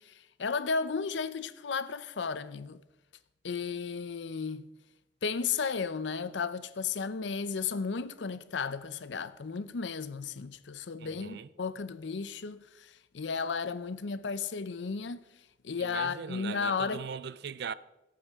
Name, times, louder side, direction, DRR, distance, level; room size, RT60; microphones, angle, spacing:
voice 1, 0.0-2.8 3.4-4.7 5.2-15.2 15.6-17.1, left 5 dB, 70° left, 0.6 m, -34 dB
voice 2, 11.0-11.5 15.8-17.7, right 6 dB, 60° right, 0.4 m, -39 dB
17.5 x 8.5 x 3.6 m
head